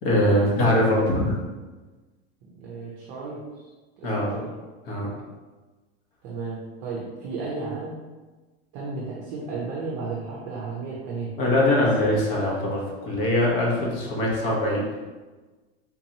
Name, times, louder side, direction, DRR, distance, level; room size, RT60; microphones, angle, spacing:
voice 1, 0.0-1.4 4.0-4.4 4.9-5.1 11.4-14.8, left 1 dB, 55° left, -2 dB, 1.1 m, -22 dB
voice 2, 2.5-3.4 4.0-4.5 6.2-8.0 8.7-11.3, right 4 dB, 35° right, -4 dB, 0.5 m, -33 dB
3.8 x 2.8 x 2.8 m, 1.3 s
supercardioid pair, 170°, 34 cm